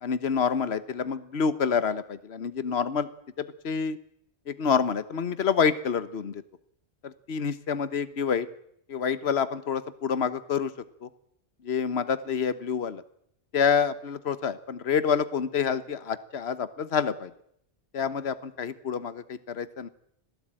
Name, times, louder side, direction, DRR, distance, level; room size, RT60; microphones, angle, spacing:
voice 1, 0.0-3.1 3.4-4.0 4.5-6.4 7.0-8.5 8.9-10.7 11.0-11.1 11.6-13.0 13.5-17.3 17.9-19.9, left 6 dB, 70° left, 14 dB, 1.4 m, -27 dB
25.5 x 17.0 x 8.9 m, 0.73 s
omnidirectional pair, 1.1 m